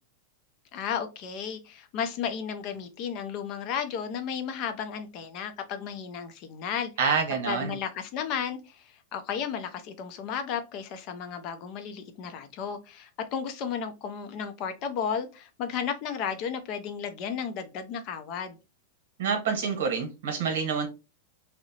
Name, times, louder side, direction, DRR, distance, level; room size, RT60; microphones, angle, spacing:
voice 1, 0.7-6.9 7.4-18.6, left 7 dB, 40° left, 0.4 m, -33 dB
voice 2, 7.0-7.7 19.2-20.9, right 5 dB, 75° right, 0.9 m, -27 dB
2.7 x 2.0 x 2.7 m
supercardioid pair, 155°, 0 cm